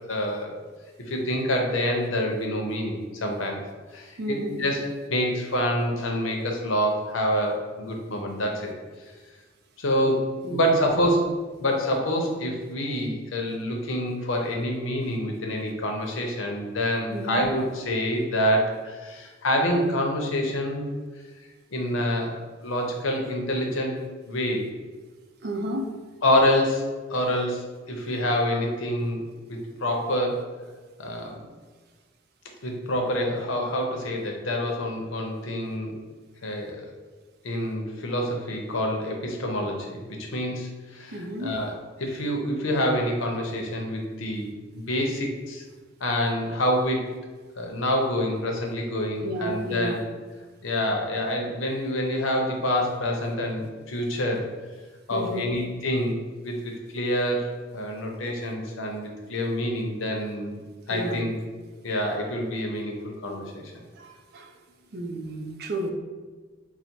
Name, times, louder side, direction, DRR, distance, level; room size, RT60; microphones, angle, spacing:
voice 1, 0.1-0.6 1.1-3.6 3.9-4.8 5.1-8.7 9.8-11.3 11.6-20.9 21.7-24.0 24.3-24.7 26.2-29.2 29.5-30.4 31.0-31.4 32.6-36.0 36.4-36.9 37.4-41.7 42.0-45.6 46.0-47.0 47.6-50.0 50.6-54.4 55.1-56.2 56.4-57.5 57.7-60.6 60.9-61.3 61.8-63.6, equal, 85° left, 1 dB, 0.7 m, -27 dB
voice 2, 4.2-4.6 10.4-10.6 17.1-17.5 25.4-25.9 41.1-41.6 49.2-50.0 55.1-55.5 60.9-61.2 64.0-64.6 64.9-65.9, right 1 dB, 55° right, 4 dB, 0.5 m, -32 dB
4.0 x 2.1 x 4.4 m, 1.4 s
head